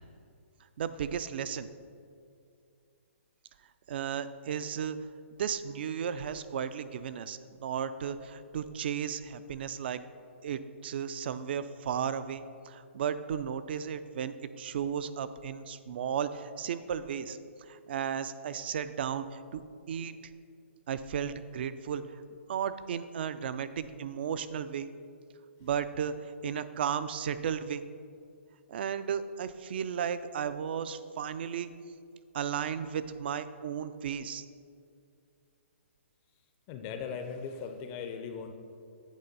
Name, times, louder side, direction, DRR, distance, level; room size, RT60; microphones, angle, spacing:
voice 1, 0.8-1.7 3.9-5.0 5.4-10.0 10.4-17.4 17.7-19.6 19.9-20.1 20.9-22.1 22.5-24.9 25.6-27.8 28.7-31.7 32.3-34.5, right 8 dB, 50° right, 13 dB, 0.3 m, -34 dB
voice 2, 36.7-38.6, left 6 dB, 25° left, 6 dB, 0.4 m, -38 dB
8.2 x 3.3 x 5.3 m, 2.3 s
hypercardioid pair, 150°, 7 cm